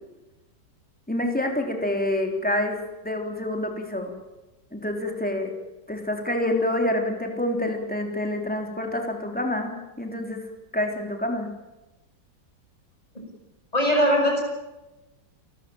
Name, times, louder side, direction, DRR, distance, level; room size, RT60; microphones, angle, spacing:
voice 1, 1.1-2.8 3.0-4.1 4.7-5.5 5.9-10.5 10.7-11.5, left 1 dB, 5° left, 2 dB, 3.5 m, -27 dB
voice 2, 13.7-14.4, equal, 20° left, 1 dB, 7.4 m, -20 dB
28.5 x 14.5 x 9.0 m, 1.1 s
omnidirectional pair, 1.9 m